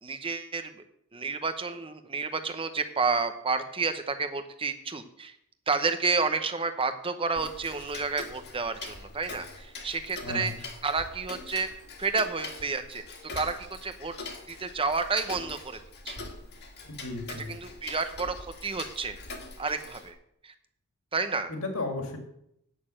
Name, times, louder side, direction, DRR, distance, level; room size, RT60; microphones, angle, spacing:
voice 1, 0.0-0.8 1.1-5.3 5.7-10.5 10.8-11.7 12.0-13.0 13.3-14.2 14.5-15.8 16.0-16.2 17.5-18.4 18.6-19.2 19.6-20.1 20.4-20.5 21.1-21.5, right 4 dB, 25° right, 9 dB, 0.9 m, -30 dB
Tick-tock, 7.4-20.1, left 3 dB, 50° left, 1.8 m, -43 dB
voice 2, 10.2-10.6 17.0-17.5 21.5-22.2, left 2 dB, 70° left, 4 dB, 2.1 m, -33 dB
9.4 x 6.6 x 7.6 m, 0.75 s
head